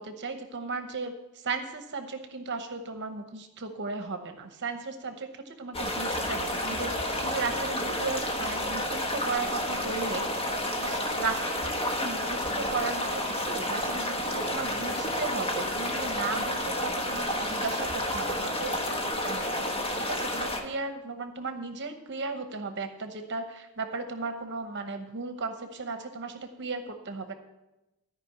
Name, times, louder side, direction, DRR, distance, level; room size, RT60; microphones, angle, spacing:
voice 1, 0.0-10.5 10.8-27.3, right 4 dB, 55° right, 7 dB, 0.9 m, -36 dB
sound 1, 5.7-20.6, left 1 dB, 25° left, 1.3 m, -30 dB
13.5 x 5.2 x 7.3 m, 0.97 s
head